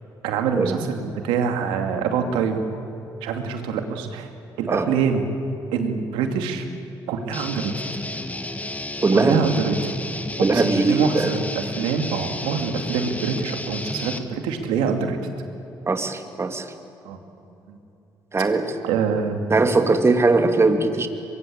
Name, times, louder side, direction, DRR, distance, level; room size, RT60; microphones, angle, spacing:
voice 1, 0.2-2.6 3.2-4.3 4.6-5.2 5.7-6.7 7.1-7.7 9.1-9.8 10.5-15.2 17.0-17.2 17.7-17.8 18.8-19.5, right 6 dB, 90° right, 5 dB, 2.5 m, -25 dB
Guitar, 7.3-14.2, left 2 dB, 15° left, 2.1 m, -32 dB
voice 2, 9.0-9.4 10.4-11.3 15.9-16.7 18.3-18.7 19.5-21.1, right 3 dB, 30° right, 7 dB, 2.6 m, -20 dB
23.5 x 22.0 x 8.6 m, 2.8 s
supercardioid pair, 65°, 9 cm